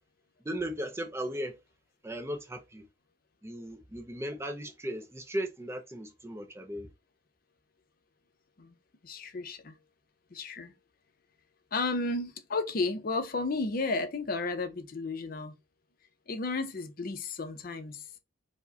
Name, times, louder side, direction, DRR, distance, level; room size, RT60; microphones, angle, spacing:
voice 1, 0.4-1.5 2.0-2.8 3.4-6.9, equal, 15° right, 0.4 m, -36 dB
voice 2, 9.0-9.7 10.3-10.7 11.7-15.5 16.3-18.0, left 3 dB, 50° left, 0.5 m, -33 dB
4.7 x 2.1 x 2.6 m
head